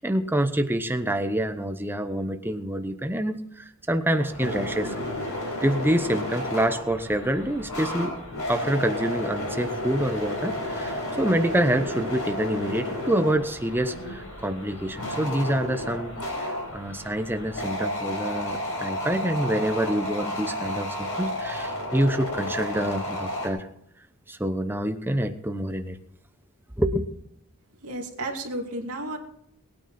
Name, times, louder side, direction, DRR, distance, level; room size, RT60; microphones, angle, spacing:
voice 1, 0.0-4.9 5.6-8.2 8.5-16.1 16.7-23.7 24.3-26.0 26.8-27.1, right 1 dB, 10° right, 8 dB, 0.9 m, -26 dB
sound 1, 4.2-23.5, left 1 dB, 65° left, 4.8 m, -32 dB
voice 2, 27.8-29.2, right 1 dB, 80° right, 1 dB, 2.4 m, -32 dB
20.0 x 9.4 x 4.3 m, 0.71 s
head